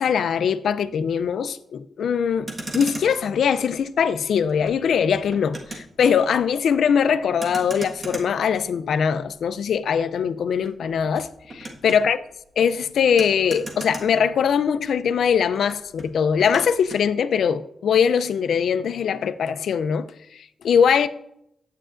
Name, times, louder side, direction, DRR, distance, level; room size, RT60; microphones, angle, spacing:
voice 1, 0.0-2.5 2.7-12.2 12.6-21.1, left 7 dB, 75° left, 0.4 m, -22 dB
Motor vehicle (road), 2.3-14.9 15.2-17.1, right 1 dB, 25° right, 1.5 m, -39 dB
11.5 x 8.8 x 2.5 m
wide cardioid pair, 155°, 0 cm